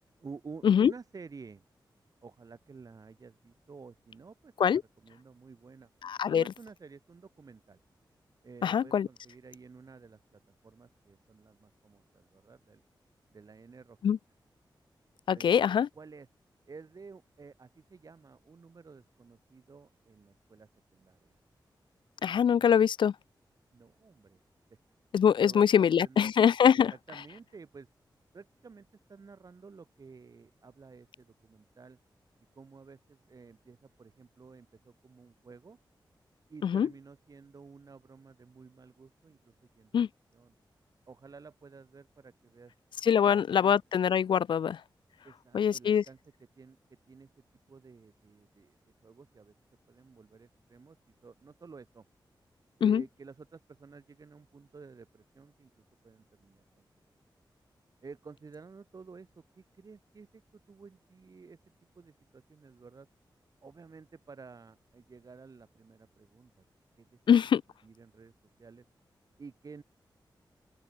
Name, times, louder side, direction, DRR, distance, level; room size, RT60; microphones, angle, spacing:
voice 1, 0.2-1.6 2.2-5.9 6.2-7.8 8.4-12.8 13.3-14.0 15.3-16.3 16.7-21.4 22.2-22.7 23.7-24.4 25.4-26.3 26.9-27.9 28.3-32.0 32.5-35.8 36.5-39.9 40.3-40.5 41.1-42.7 43.2-43.7 45.2-46.2 46.6-46.8 47.1-47.3 47.7-48.8 49.0-49.5 49.9-51.0 51.2-52.0 52.8-55.7 56.0-56.8 58.0-60.4 60.7-61.6 61.9-63.1 63.6-66.6 67.0-67.1 67.8-68.3 68.6-68.8 69.4-69.8, right 4 dB, 45° right, 6.7 m, -52 dB
voice 2, 6.0-6.4 8.6-9.1 14.0-14.2 15.3-15.9 22.2-23.1 25.1-26.9 36.6-36.9 39.9-40.1 43.0-44.8 45.5-46.0 52.8-53.0 67.3-67.6, left 8 dB, 75° left, 0.4 m, -23 dB
open air
wide cardioid pair, 150°, 8 cm